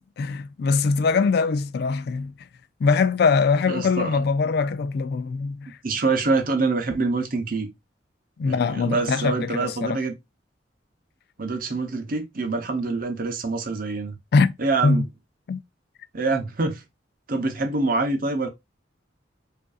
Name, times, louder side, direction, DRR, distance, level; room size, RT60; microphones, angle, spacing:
voice 1, 0.2-2.3 2.8-5.8 8.4-10.0 14.3-14.5 14.8-15.0 15.5-15.6, left 4 dB, 55° left, 0.3 m, -22 dB
voice 2, 3.7-4.2 5.8-7.7 8.4-10.1 11.4-14.2 14.6-15.0 16.1-16.8 17.3-18.5, right 3 dB, 50° right, 0.7 m, -25 dB
5.0 x 2.6 x 2.3 m
head